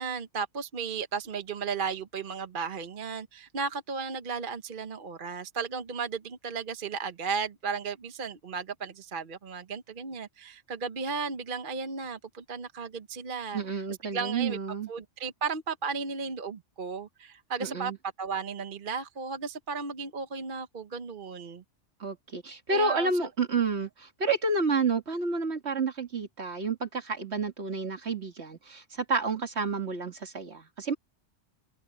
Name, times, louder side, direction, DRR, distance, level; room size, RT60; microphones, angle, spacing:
voice 1, 0.0-13.6 14.1-14.6 14.9-17.9 18.2-21.6 22.7-23.1, right 5 dB, 50° right, 1.1 m, -35 dB
voice 2, 13.5-14.9 17.6-18.0 22.0-30.9, right 4 dB, 65° right, 2.3 m, -30 dB
open air
omnidirectional pair, 1.2 m